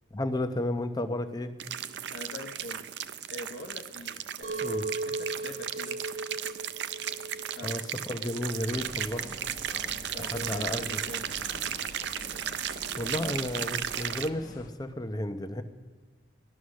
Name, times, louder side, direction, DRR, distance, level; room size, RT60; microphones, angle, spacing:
voice 1, 0.1-1.5 4.6-4.9 7.6-9.3 10.2-11.0 13.0-15.6, left 1 dB, 20° left, 8 dB, 0.8 m, -32 dB
sound 1, 1.6-14.3, right 10 dB, 70° right, 0.5 m, -35 dB
voice 2, 2.1-2.9 3.3-6.0 7.5-7.7 10.1-11.3, left 1 dB, 80° left, 3 dB, 1.1 m, -43 dB
Chink clink, 4.4-9.6, right 3 dB, 45° right, 1.0 m, -38 dB
sound 2, 8.7-14.7, left 1 dB, 50° left, 1.1 m, -46 dB
16.0 x 11.5 x 6.4 m, 1.5 s
head